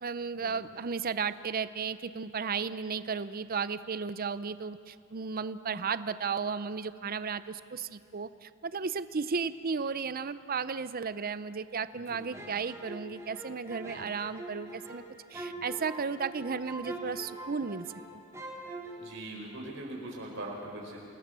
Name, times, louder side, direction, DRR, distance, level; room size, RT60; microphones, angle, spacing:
voice 1, 0.0-15.0 15.3-17.9 18.1-18.2, right 5 dB, 45° right, 14 dB, 0.6 m, -34 dB
voice 2, 11.9-12.2 19.0-21.0, right 1 dB, 65° right, -1 dB, 4.7 m, -41 dB
sound 1, 12.3-18.1 18.3-19.0, right 2 dB, 15° right, 3.8 m, -43 dB
28.5 x 20.0 x 6.8 m, 2.3 s
head